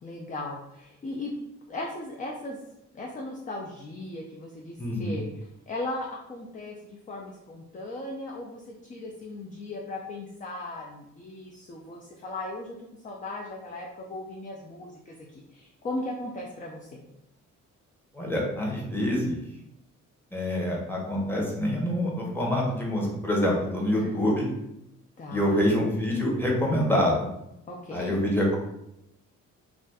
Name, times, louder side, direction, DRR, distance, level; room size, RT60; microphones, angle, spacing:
voice 1, 0.0-1.3 1.7-2.6 2.9-17.0 23.9-24.1 25.2-25.6 27.7-28.2, left 2 dB, 25° left, 0 dB, 0.4 m, -37 dB
voice 2, 4.8-5.2 18.1-19.4 20.3-24.5 25.3-27.3 27.9-28.6, left 1 dB, 5° left, -3 dB, 0.9 m, -26 dB
2.5 x 2.3 x 3.4 m, 0.83 s
cardioid pair, 90°, 30 cm